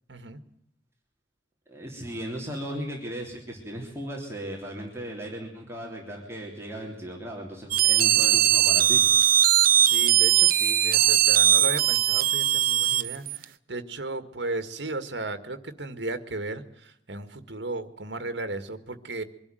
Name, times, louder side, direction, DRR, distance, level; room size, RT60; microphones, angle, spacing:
voice 1, 0.1-0.4 9.9-19.2, right 2 dB, 70° right, 9 dB, 1.9 m, -35 dB
voice 2, 1.7-9.1, equal, 15° right, -1 dB, 3.3 m, -36 dB
sound 1, 7.7-13.4, right 11 dB, 50° right, 0.7 m, -20 dB
24.0 x 12.5 x 9.2 m, 0.77 s
head